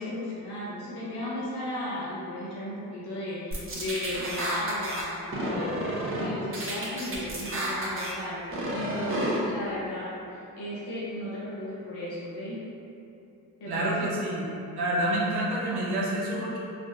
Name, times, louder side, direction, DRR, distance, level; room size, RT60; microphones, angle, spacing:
voice 1, 0.0-12.7 13.6-14.1, left 1 dB, 80° left, -8 dB, 1.0 m, -35 dB
sound 1, 3.5-5.0 5.3-6.3 6.5-8.1 8.5-9.4, right 1 dB, 35° right, 0.8 m, -31 dB
voice 2, 13.7-14.4 14.8-16.6, right 1 dB, 75° right, -4 dB, 0.8 m, -28 dB
3.5 x 2.5 x 2.3 m, 2.8 s
supercardioid pair, 50°, 39 cm